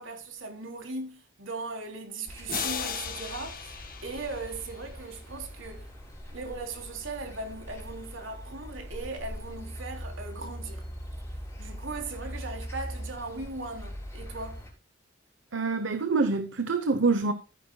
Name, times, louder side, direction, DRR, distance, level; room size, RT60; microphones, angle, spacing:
voice 1, 0.0-3.8 4.0-5.9 6.3-10.8 11.6-14.7, right 3 dB, 85° right, 3.4 m, -38 dB
sound 1, 2.3-14.7, equal, 15° left, 4.1 m, -41 dB
sound 2, 2.5-5.2, left 7 dB, 45° left, 2.1 m, -36 dB
voice 2, 15.5-17.3, right 4 dB, 70° right, 0.9 m, -26 dB
14.5 x 10.0 x 2.3 m
head